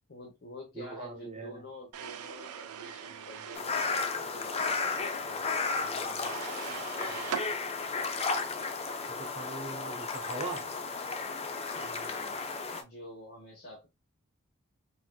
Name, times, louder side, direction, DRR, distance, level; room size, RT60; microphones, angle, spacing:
voice 1, 0.1-7.5 11.7-12.4 12.7-13.9, left 1 dB, 50° left, 0.9 m, -48 dB
voice 2, 0.7-1.6 9.1-10.7, right 3 dB, 30° right, 0.9 m, -40 dB
sound 1, 1.9-3.7 6.1-7.5, right 8 dB, 80° right, 0.4 m, -40 dB
sound 2, 3.5-12.8, left 4 dB, 30° left, 0.4 m, -34 dB
4.1 x 2.6 x 2.3 m
head